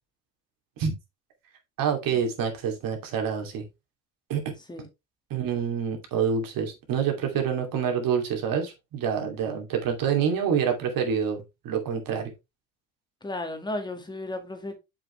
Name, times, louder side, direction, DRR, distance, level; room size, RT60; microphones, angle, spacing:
voice 1, 1.8-3.6 4.3-4.4 5.3-12.3, right 7 dB, 60° right, 2.6 m, -27 dB
voice 2, 13.2-14.8, left 1 dB, 10° left, 1.8 m, -34 dB
7.0 x 5.8 x 3.2 m
cardioid pair, 110°, 39 cm